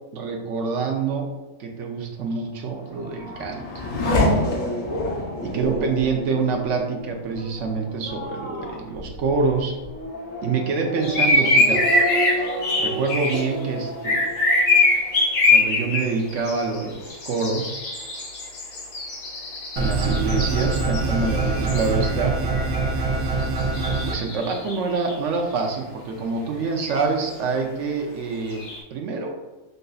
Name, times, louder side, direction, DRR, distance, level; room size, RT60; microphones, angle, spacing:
voice 1, 0.1-1.3 1.6-3.6 5.4-9.8 10.4-12.0 12.8-14.3 15.5-17.7 19.8-22.4 24.0-28.6 28.9-29.4, right 4 dB, 65° right, 2 dB, 0.9 m, -26 dB
Race car auto racing / Accelerating revving vroom, 2.6-15.9 16.2-16.9, left 1 dB, 65° left, 1.2 m, -29 dB
sound 1, 11.0-13.5 14.0-22.2 22.5-23.1 23.4-25.1 26.8-27.0 28.3-28.8, left 2 dB, 90° left, 1.6 m, -23 dB
sound 2, 19.8-24.1, right 3 dB, 85° right, 1.3 m, -24 dB
6.6 x 2.5 x 2.3 m, 1.1 s
omnidirectional pair, 1.6 m